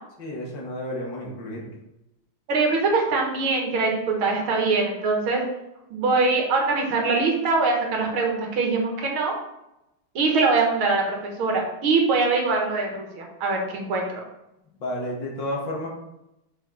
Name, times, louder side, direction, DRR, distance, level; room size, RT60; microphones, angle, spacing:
voice 1, 0.2-1.7 14.8-15.9, left 1 dB, 60° left, -2 dB, 2.0 m, -31 dB
voice 2, 2.5-5.4 5.9-9.3 10.2-14.1, right 3 dB, 75° right, 0 dB, 2.1 m, -23 dB
6.3 x 6.2 x 3.1 m, 0.89 s
omnidirectional pair, 2.3 m